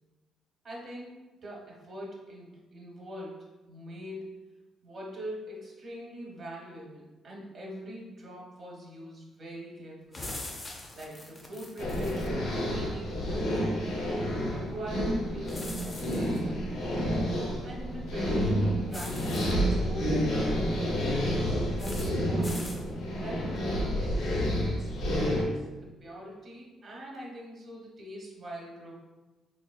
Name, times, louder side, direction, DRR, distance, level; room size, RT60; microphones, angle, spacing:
voice 1, 0.6-4.4 4.8-10.3 10.9-14.1 14.5-17.1 17.6-22.6 23.2-28.9, equal, 50° right, -2 dB, 1.0 m, -43 dB
sound 1, 10.1-12.3 15.5-16.4 18.9-19.5 21.8-22.1 22.4-22.8, left 2 dB, 30° left, 0.5 m, -42 dB
sound 2, 11.8-25.4, equal, 85° left, 0.7 m, -29 dB
4.1 x 2.4 x 2.2 m, 1.1 s
cardioid pair, 90°, 0 cm